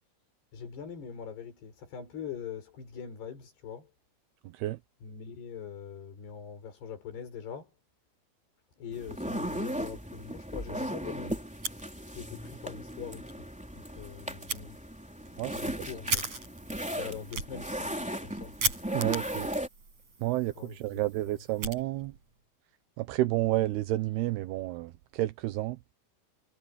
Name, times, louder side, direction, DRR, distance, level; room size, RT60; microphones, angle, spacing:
voice 1, 0.5-3.9 5.0-7.7 8.8-11.4 12.1-13.3 13.7-14.8 15.5-16.3 16.9-18.6 20.5-21.0, left 7 dB, 80° left, 7.4 m, -42 dB
sound 1, 8.9-19.7, equal, ahead, 2.8 m, -37 dB
Fire, 11.5-12.4 12.7-12.8 13.2-13.3 14.5-14.6 15.2-22.3, right 4 dB, 40° right, 7.7 m, -38 dB
voice 2, 18.9-19.5 20.2-22.1 23.0-25.8, right 17 dB, 80° right, 2.8 m, -30 dB
omnidirectional pair, 4.7 m